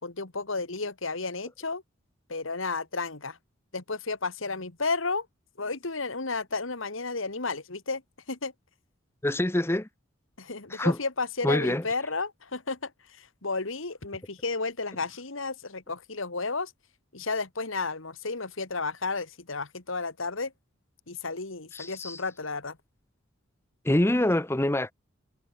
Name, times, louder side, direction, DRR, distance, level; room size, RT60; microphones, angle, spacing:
voice 1, 0.0-1.8 2.3-3.4 3.7-5.3 5.6-8.0 8.3-8.5 10.4-16.7 17.1-20.5 21.1-22.8, left 3 dB, 75° left, 2.2 m, -32 dB
voice 2, 9.2-9.9 10.7-11.0 11.4-11.8 21.7-22.2 23.8-24.9, left 1 dB, 10° left, 0.7 m, -25 dB
head